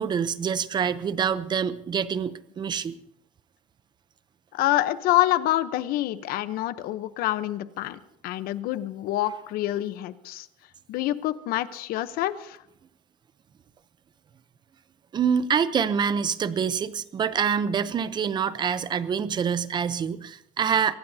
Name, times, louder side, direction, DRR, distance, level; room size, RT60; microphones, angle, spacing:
voice 1, 0.0-3.0 15.1-20.9, right 7 dB, 25° right, 14 dB, 0.7 m, -26 dB
voice 2, 4.5-10.5 10.9-12.6, left 14 dB, 60° left, 13 dB, 0.9 m, -27 dB
24.0 x 17.5 x 2.8 m, 0.79 s
cardioid pair, 145°, 17 cm